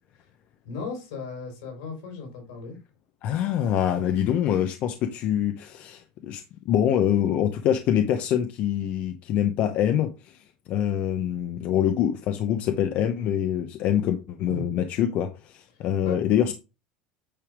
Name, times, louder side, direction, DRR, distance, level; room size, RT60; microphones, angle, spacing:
voice 1, 0.6-2.7 14.5-14.6 16.0-16.1, left 4 dB, 85° left, 4.3 m, -36 dB
voice 2, 3.2-16.5, left 10 dB, 55° left, 0.8 m, -25 dB
8.8 x 3.5 x 4.9 m
supercardioid pair, 120°, 3 cm